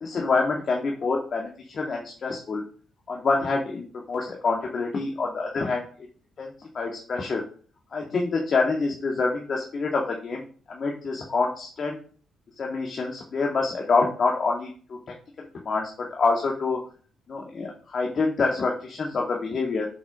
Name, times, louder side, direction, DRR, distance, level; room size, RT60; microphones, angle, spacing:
voice 1, 0.0-2.6 3.1-5.8 6.4-7.4 7.9-12.0 12.6-16.8 17.3-19.9, left 4 dB, 50° left, -1 dB, 2.0 m, -27 dB
7.4 x 6.3 x 6.2 m, 0.42 s
cardioid pair, 90°, 0 cm